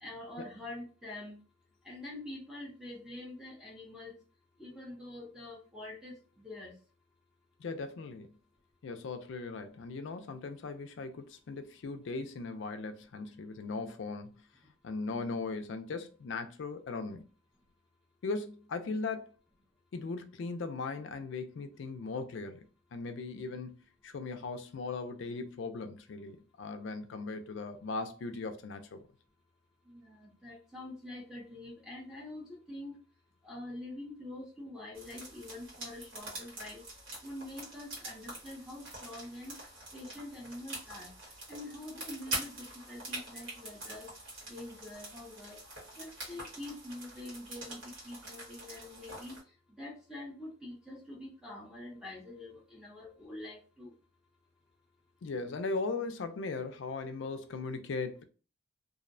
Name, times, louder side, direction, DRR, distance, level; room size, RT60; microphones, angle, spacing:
voice 1, 0.0-1.4 1.8-4.2 4.6-6.7 29.9-33.0 33.4-36.8 37.2-39.6 39.9-41.1 41.5-44.1 44.5-45.6 46.0-53.9, left 1 dB, 5° right, 0.5 m, -45 dB
voice 2, 7.6-8.3 8.8-14.3 14.8-17.2 18.2-19.4 19.9-22.6 22.9-23.8 24.0-29.0 55.2-58.2, left 3 dB, 60° left, 0.4 m, -38 dB
sound 1, 34.9-49.4, right 2 dB, 70° right, 1.3 m, -45 dB
2.5 x 2.0 x 2.5 m
head